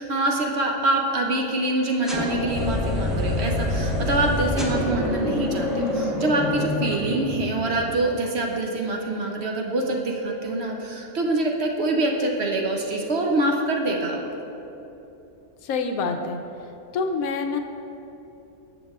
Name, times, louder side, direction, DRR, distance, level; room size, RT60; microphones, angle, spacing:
voice 1, 0.0-14.2, right 2 dB, 55° right, 1 dB, 0.8 m, -25 dB
sound 1, 2.0-8.0, left 1 dB, ahead, 0.6 m, -26 dB
voice 2, 15.6-16.4 16.9-17.6, left 4 dB, 80° left, 5 dB, 1.0 m, -26 dB
13.0 x 7.2 x 2.4 m, 2.9 s
omnidirectional pair, 1.5 m